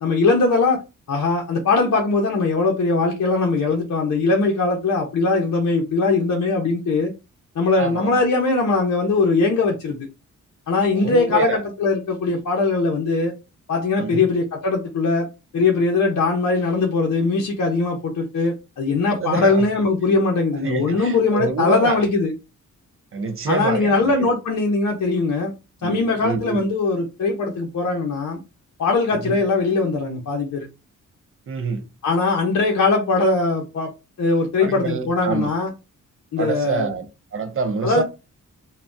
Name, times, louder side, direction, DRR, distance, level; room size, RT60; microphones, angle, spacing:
voice 1, 0.0-0.8 1.1-7.1 7.6-10.0 10.7-13.3 13.7-15.3 15.5-22.3 23.5-25.5 25.8-28.4 28.8-30.7 32.0-33.9 34.2-35.7 36.3-36.9 37.8-38.0, left 3 dB, 60° left, 0.7 m, -20 dB
voice 2, 7.8-8.2 10.9-11.6 14.0-14.3 19.2-19.7 20.6-22.0 23.1-24.3 25.8-26.6 29.1-29.4 31.5-31.8 34.6-35.5 36.4-37.1 37.3-38.0, right 4 dB, 40° right, 0.6 m, -26 dB
3.3 x 2.2 x 2.6 m
cardioid pair, 95°, 32 cm